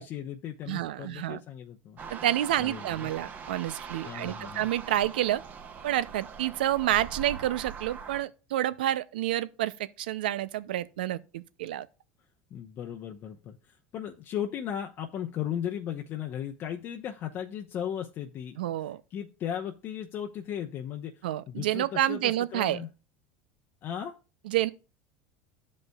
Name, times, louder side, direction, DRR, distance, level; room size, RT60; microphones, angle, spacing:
voice 1, 0.0-2.0 2.6-3.1 4.0-4.6 12.5-13.6 13.9-18.6 19.1-21.1 21.5-22.9 23.8-24.1, left 9 dB, 50° left, 0.8 m, -36 dB
voice 2, 0.7-1.4 2.1-5.4 5.8-11.9 18.6-19.0 21.2-22.8 24.4-24.7, right 13 dB, 90° right, 0.5 m, -29 dB
sound 1, 2.0-8.2, right 6 dB, 35° right, 1.1 m, -42 dB
12.5 x 5.3 x 2.3 m
supercardioid pair, 105°, 5 cm